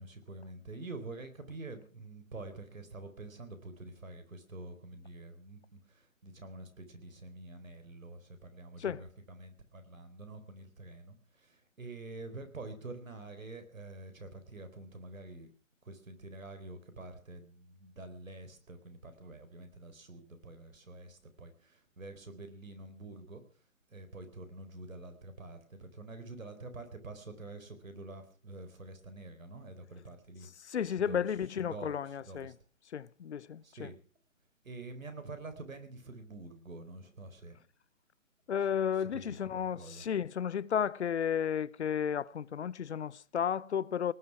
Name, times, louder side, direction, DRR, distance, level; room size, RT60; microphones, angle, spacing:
voice 1, 0.0-15.5 15.8-23.4 23.9-30.5 30.9-31.3 31.6-32.0 32.3-32.5 33.6-33.9 34.6-37.6 39.0-40.0, right 2 dB, 80° right, 4.3 m, -47 dB
voice 2, 30.6-32.5 32.9-33.9 38.5-44.1, left 8 dB, 55° left, 0.7 m, -33 dB
19.0 x 12.0 x 6.0 m
figure-of-eight pair, 145°, 40 cm